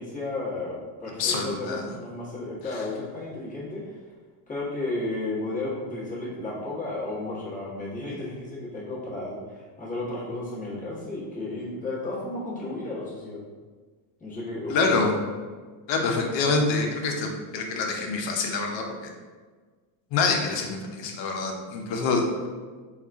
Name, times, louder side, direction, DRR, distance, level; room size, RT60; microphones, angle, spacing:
voice 1, 0.0-4.0 4.5-13.4 14.2-15.0, left 2 dB, 15° left, -8 dB, 1.4 m, -33 dB
voice 2, 1.2-1.8 14.7-15.1 15.9-18.8 20.1-22.5, left 4 dB, 60° left, 2 dB, 0.8 m, -26 dB
3.5 x 2.4 x 3.4 m, 1.4 s
cardioid pair, 110°, 50 cm